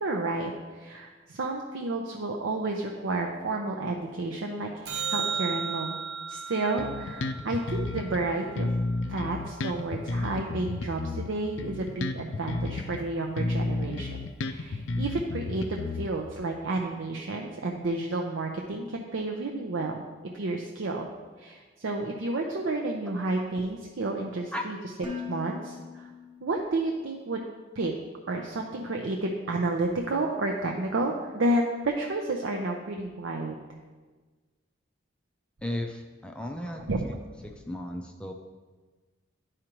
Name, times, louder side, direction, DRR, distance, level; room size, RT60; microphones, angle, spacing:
voice 1, 0.0-6.0 6.3-8.7 9.1-14.2 14.4-20.0 20.3-21.1 21.4-24.8 25.3-26.1 26.4-27.4 27.8-27.9 28.3-33.6 36.4-36.5 36.7-37.0, right 2 dB, 75° right, 1 dB, 0.6 m, -31 dB
sound 1, 4.9-9.3 15.9-16.0, right 6 dB, 55° right, 1.0 m, -36 dB
Bass guitar, 6.8-8.2 8.6-13.0 13.4-16.4, left 2 dB, 70° left, 0.4 m, -32 dB
Dishes pots and pans, 25.0-27.1, left 6 dB, 25° right, 1.1 m, -41 dB
voice 2, 35.6-37.2 37.4-38.3, left 1 dB, 5° left, 3 dB, 0.4 m, -35 dB
11.0 x 4.9 x 3.0 m, 1.3 s
head